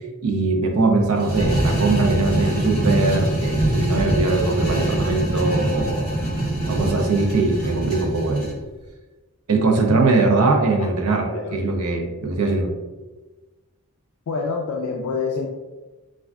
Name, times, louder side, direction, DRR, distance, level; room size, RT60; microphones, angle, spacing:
voice 1, 0.2-6.1 6.7-8.5 9.5-12.7, right 3 dB, 85° right, 2 dB, 0.5 m, -21 dB
sound 1, 1.2-8.6, right 1 dB, 5° left, 1.4 m, -23 dB
voice 2, 14.3-15.5, left 4 dB, 80° left, 0 dB, 0.3 m, -26 dB
3.2 x 2.4 x 2.4 m, 1.2 s
head